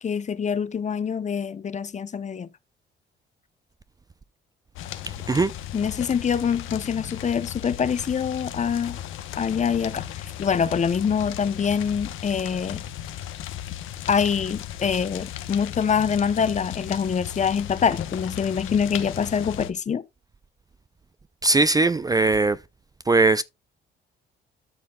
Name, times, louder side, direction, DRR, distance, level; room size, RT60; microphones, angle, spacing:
voice 1, 0.0-2.5 5.7-9.0 9.4-10.1 10.4-12.8 14.1-20.0, left 7 dB, 35° left, 0.7 m, -25 dB
sound 1, 4.8-19.7, left 11 dB, 85° left, 0.9 m, -36 dB
voice 2, 21.4-22.6 23.1-23.4, right 3 dB, 20° right, 0.4 m, -19 dB
12.5 x 5.7 x 2.3 m
cardioid pair, 90°, 20 cm